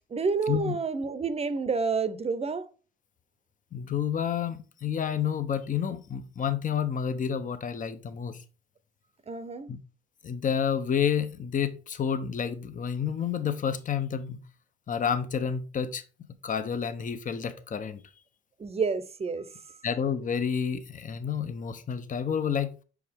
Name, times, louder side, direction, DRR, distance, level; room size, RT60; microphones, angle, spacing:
voice 1, 0.1-2.6 9.3-9.7 18.6-19.8, right 5 dB, 30° right, 0.7 m, -29 dB
voice 2, 3.7-8.4 9.7-9.8 10.2-14.4 14.9-16.0 16.4-18.0 19.8-22.8, left 7 dB, 40° left, 0.8 m, -29 dB
6.0 x 4.8 x 3.5 m
cardioid pair, 90°, 20 cm